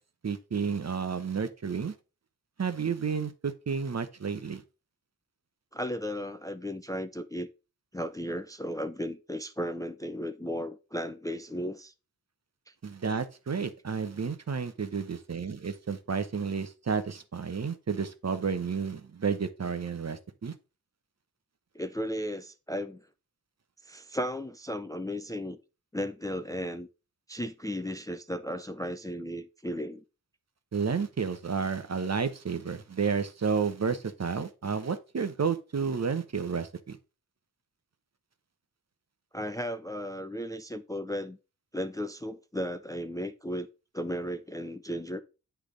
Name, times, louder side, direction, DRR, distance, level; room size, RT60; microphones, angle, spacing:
voice 1, 0.2-1.9 2.6-4.6 12.8-20.5 30.7-37.0, right 5 dB, 45° right, 0.8 m, -31 dB
voice 2, 5.7-7.5 7.9-11.9 12.7-12.8 21.7-23.1 23.8-25.6 25.9-26.9 27.3-30.0 39.3-41.4 41.7-43.7 43.9-45.2, equal, 10° left, 0.4 m, -35 dB
8.1 x 3.5 x 5.0 m
wide cardioid pair, 75°, 36 cm